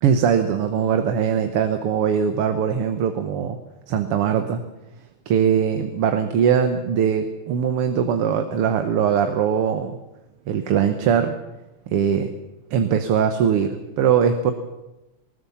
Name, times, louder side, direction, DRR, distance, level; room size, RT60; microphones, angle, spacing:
voice 1, 0.0-3.6 3.9-4.6 5.3-10.0 10.5-11.4 11.9-12.3 12.7-14.5, right 7 dB, 90° right, 8 dB, 2.1 m, -21 dB
20.0 x 19.5 x 7.2 m, 0.99 s
omnidirectional pair, 2.4 m